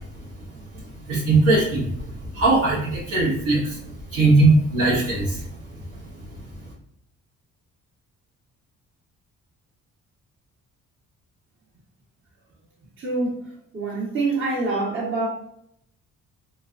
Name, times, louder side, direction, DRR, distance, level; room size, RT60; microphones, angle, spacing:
voice 1, 1.1-1.9 2.3-5.4, right 2 dB, 80° right, -7 dB, 1.1 m, -19 dB
voice 2, 13.0-13.4 13.7-15.3, right 3 dB, 45° right, -4 dB, 1.1 m, -25 dB
3.2 x 3.2 x 2.5 m, 0.72 s
cardioid pair, 90°, 30 cm